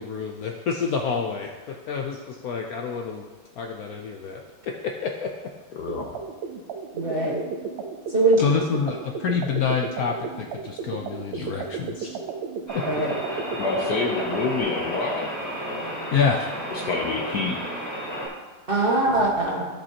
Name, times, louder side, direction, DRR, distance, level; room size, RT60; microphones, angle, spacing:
voice 1, 0.0-3.2 3.6-4.4 5.0-5.3 8.4-12.1 12.7-12.8 16.1-16.4, left 6 dB, 85° left, 2 dB, 0.8 m, -27 dB
voice 2, 5.7-6.2 11.3-11.5 12.0-12.2 13.6-15.3 16.7-17.6 19.1-19.2, left 4 dB, 65° left, 1 dB, 1.1 m, -28 dB
sound 1, 5.9-14.6, right 6 dB, 75° right, 1.5 m, -34 dB
voice 3, 6.9-7.4 8.1-8.4 12.9-13.1 18.7-19.7, right 2 dB, 30° right, -4 dB, 1.6 m, -22 dB
sound 2, 12.7-18.3, equal, 5° left, 2.5 m, -32 dB
15.5 x 5.3 x 2.9 m, 1.3 s
omnidirectional pair, 2.3 m